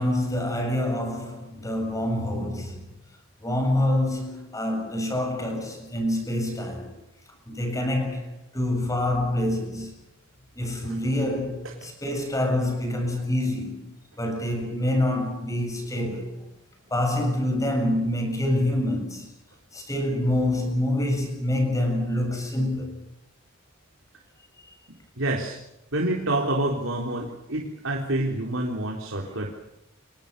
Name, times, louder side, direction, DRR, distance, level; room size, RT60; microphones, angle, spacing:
voice 1, 0.0-2.8 3.4-7.0 7.5-9.9 10.5-13.9 14.2-16.4 16.9-19.3 19.7-22.9, left 1 dB, 15° left, 7.4 m, -26 dB
voice 2, 25.2-25.6 25.9-29.5, right 1 dB, 80° right, 3.9 m, -27 dB
29.5 x 24.0 x 6.9 m
head